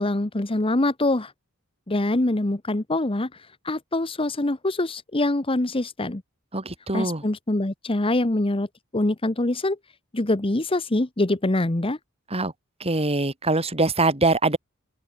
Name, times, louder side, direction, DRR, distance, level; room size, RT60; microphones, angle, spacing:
voice 1, 0.0-1.3 1.9-3.3 3.6-6.2 6.9-8.7 8.9-9.8 10.1-12.0, left 2 dB, 25° left, 1.1 m, -24 dB
voice 2, 6.5-7.2 12.3-12.5 12.8-14.6, right 2 dB, 30° right, 3.7 m, -23 dB
open air
head